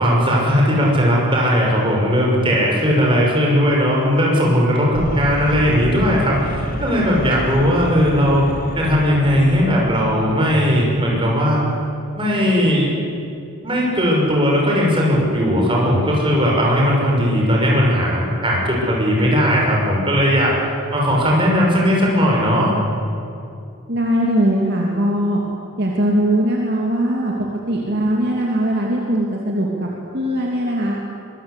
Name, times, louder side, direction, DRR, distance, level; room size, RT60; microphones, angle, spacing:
voice 1, 0.0-8.4 8.7-11.6 12.2-12.9 13.6-20.6 20.9-22.7, equal, 25° right, -2 dB, 6.0 m, -17 dB
sound 1, 4.9-11.2, left 1 dB, 40° left, 2.0 m, -30 dB
voice 2, 23.9-25.4 25.8-27.3 27.7-29.9 30.1-31.0, right 1 dB, 50° right, -2 dB, 2.7 m, -20 dB
24.0 x 22.0 x 8.3 m, 2.5 s
head